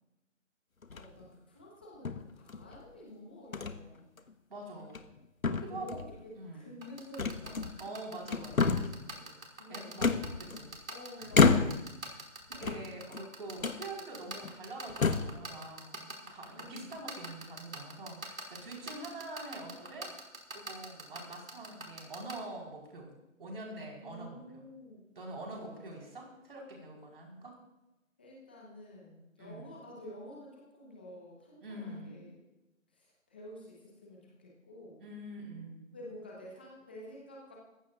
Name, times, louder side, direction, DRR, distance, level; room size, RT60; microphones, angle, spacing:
sound 1, 0.8-1.3 2.1-2.8 3.5-3.8 4.2-4.3 4.8-5.2 5.4-6.1 7.2-7.9 8.3-9.0 10.0-10.8 11.3-12.0 12.5-13.2 13.6-13.8 14.4-14.5 14.9-15.4, left 5 dB, 85° left, 1.3 m, -29 dB
voice 1, 0.9-4.1 5.7-7.8 9.5-10.6 10.9-11.8 16.5-16.9 24.0-25.0 25.4-26.1 28.2-32.4 32.9-35.0 35.9-37.5, left 1 dB, 10° left, -3 dB, 1.0 m, -50 dB
voice 2, 4.5-5.1 5.4-6.0 6.4-6.8 7.8-9.4 9.7-10.8 11.2-11.6 12.5-20.1 20.5-23.1 23.4-24.7 25.1-27.5 29.4-29.8 31.6-32.3 35.0-36.0, right 2 dB, 45° right, -1 dB, 4.5 m, -45 dB
sound 2, 6.8-22.3, right 3 dB, 80° right, 4.7 m, -41 dB
21.0 x 15.0 x 2.5 m, 0.96 s
figure-of-eight pair, 165°, 40 cm